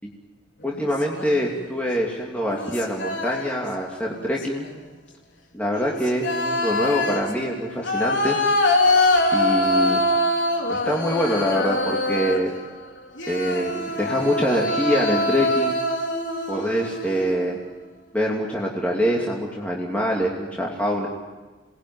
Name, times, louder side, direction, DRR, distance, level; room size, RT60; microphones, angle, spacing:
voice 1, 0.6-4.6 5.5-8.4 9.3-10.0 10.7-12.5 13.3-15.7 16.5-17.6 18.1-21.1, equal, 5° left, -3 dB, 2.8 m, -24 dB
sound 1, 0.7-1.5 2.5-3.7 4.1-4.7 5.7-12.6 13.2-17.5, left 1 dB, 70° left, 4.2 m, -24 dB
29.0 x 20.5 x 9.7 m, 1.3 s
head